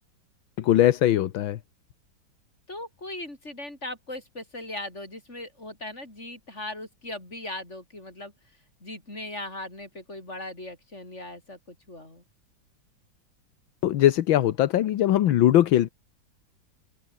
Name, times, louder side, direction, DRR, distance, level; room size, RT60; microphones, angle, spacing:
voice 1, 0.6-1.6 13.8-15.9, left 12 dB, 80° left, 1.7 m, -20 dB
voice 2, 2.7-8.3 8.8-12.2, left 1 dB, 35° left, 7.8 m, -39 dB
open air
omnidirectional pair, 2.2 m